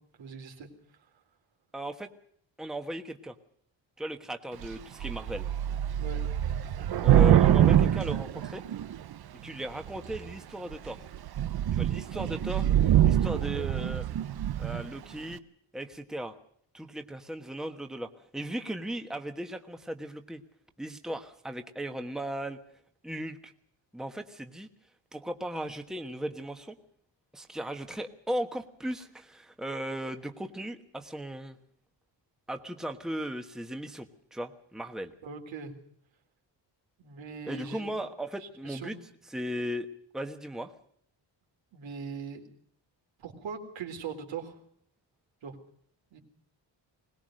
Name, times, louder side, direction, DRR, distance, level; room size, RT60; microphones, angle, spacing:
voice 1, 0.2-0.7 6.0-6.2 13.3-13.7 35.2-35.7 37.0-37.9 38.6-38.9 41.7-42.5 43.2-44.6 45.4-45.6 46.1-46.2, right 6 dB, 85° right, 4 dB, 3.9 m, -40 dB
voice 2, 1.7-2.1 2.6-3.4 4.0-5.5 7.0-8.6 9.4-11.0 11.7-14.0 14.6-15.4 15.7-16.4 16.7-20.4 20.8-22.6 23.0-23.5 23.9-24.7 25.1-26.8 27.3-31.6 32.5-35.1 37.5-39.0 39.3-39.9 40.1-40.7, right 1 dB, ahead, 6 dB, 1.2 m, -37 dB
Thunder / Rain, 4.6-4.8 5.0-9.1 9.9-10.3 10.7-10.9 11.1-14.9, right 11 dB, 55° right, 0.8 m, -24 dB
21.5 x 20.0 x 6.5 m, 0.64 s
wide cardioid pair, 155°, 44 cm